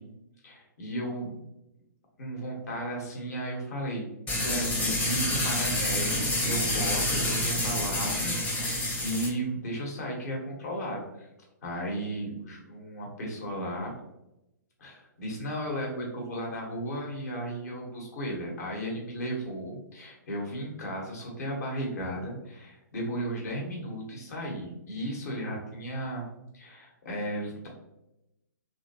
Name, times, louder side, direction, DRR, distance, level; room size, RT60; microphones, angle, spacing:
voice 1, 0.4-1.3 2.2-4.1 4.3-11.3 11.6-13.9 14.8-26.3 26.5-27.7, right 1 dB, 60° left, -1 dB, 1.2 m, -35 dB
sound 1, 4.3-9.3, left 1 dB, 15° left, 0.7 m, -28 dB
2.9 x 2.7 x 2.7 m, 0.87 s
figure-of-eight pair, 125°, 10 cm